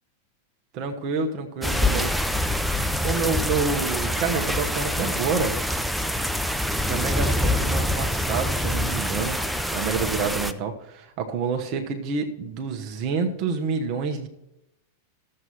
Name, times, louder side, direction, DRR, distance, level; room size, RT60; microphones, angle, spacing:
voice 1, 0.7-2.2 3.0-5.6 6.8-9.4 9.7-14.3, right 5 dB, 40° right, 5 dB, 1.2 m, -28 dB
sound 1, 1.6-10.5, left 1 dB, ahead, 0.5 m, -25 dB
12.5 x 7.7 x 4.4 m, 0.84 s
figure-of-eight pair, 90°, 0 cm